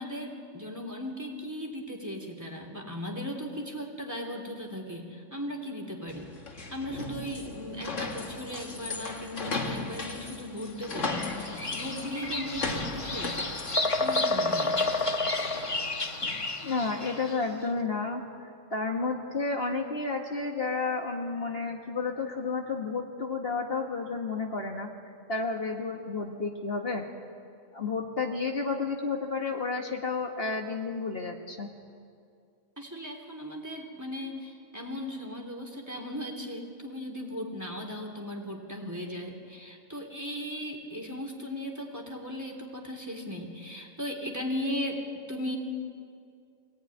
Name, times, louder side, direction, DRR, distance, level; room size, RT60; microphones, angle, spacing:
voice 1, 0.0-6.3 6.7-13.5 14.0-14.8 32.8-45.0 45.3-45.6, left 1 dB, 15° right, 1 dB, 3.2 m, -37 dB
sound 1, 6.1-16.5, left 3 dB, 70° left, 2.2 m, -37 dB
Bird vocalization bird call bird song, 10.8-17.4, left 2 dB, 25° left, 1.1 m, -30 dB
voice 2, 16.6-18.2 18.7-24.9 25.3-27.1 27.7-31.7, left 4 dB, 50° left, 2 dB, 1.8 m, -31 dB
24.5 x 18.5 x 9.8 m, 2.3 s
omnidirectional pair, 1.3 m